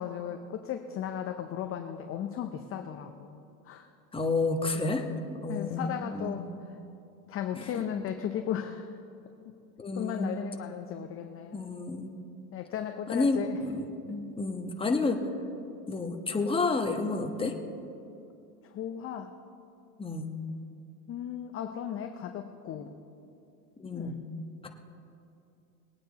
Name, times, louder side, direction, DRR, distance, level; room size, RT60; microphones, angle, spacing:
voice 1, 0.0-3.9 5.5-6.8 7.3-9.0 9.9-11.6 12.5-13.6 14.1-14.2 18.6-19.3 21.1-23.0 23.9-24.2, left 9 dB, 30° left, 6 dB, 0.7 m, -36 dB
voice 2, 4.1-5.0 5.3-6.5 7.5-7.9 9.8-10.4 11.5-12.2 13.1-15.2 15.9-17.5 20.0-20.4 23.8-24.2 24.6-24.7, left 3 dB, 10° left, 3 dB, 1.2 m, -30 dB
20.5 x 9.2 x 4.1 m, 2.7 s
hypercardioid pair, 105°, 49 cm